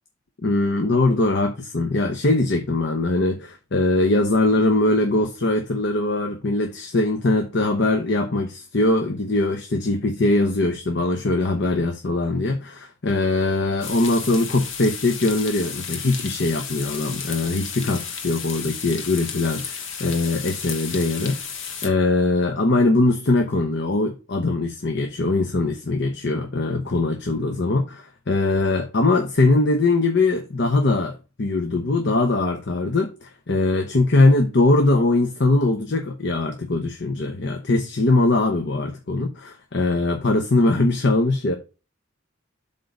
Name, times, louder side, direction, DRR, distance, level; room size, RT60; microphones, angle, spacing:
voice 1, 0.4-21.4 21.8-41.5, left 2 dB, 60° left, 0.9 m, -21 dB
sound 1, 13.8-21.9, left 6 dB, 80° left, 1.7 m, -33 dB
7.9 x 3.7 x 5.3 m
head